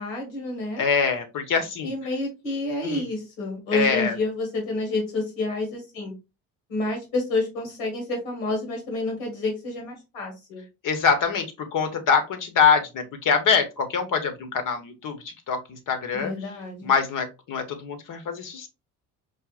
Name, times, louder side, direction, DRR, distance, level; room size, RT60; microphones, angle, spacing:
voice 1, 0.0-0.8 1.8-6.1 6.7-10.6 16.1-16.9, left 2 dB, 90° left, 1 dB, 1.7 m, -29 dB
voice 2, 0.8-1.9 2.8-3.0 3.7-4.2 10.8-16.3 16.8-18.7, left 6 dB, 55° left, 7 dB, 1.0 m, -24 dB
4.9 x 2.5 x 2.4 m, 0.27 s
supercardioid pair, 70°, 38 cm